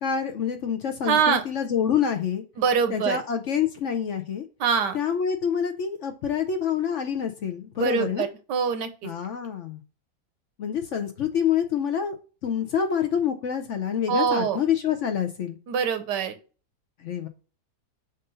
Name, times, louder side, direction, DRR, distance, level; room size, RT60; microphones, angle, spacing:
voice 1, 0.0-2.4 2.9-4.4 4.9-8.3 9.0-9.8 10.6-12.2 12.4-15.6 17.0-17.3, left 8 dB, 60° left, 7 dB, 0.9 m, -27 dB
voice 2, 1.0-1.4 2.6-3.2 4.6-5.0 7.8-9.1 14.1-14.6 15.7-16.4, right 6 dB, 90° right, 9 dB, 1.5 m, -24 dB
7.4 x 2.7 x 5.4 m, 0.35 s
omnidirectional pair, 1.8 m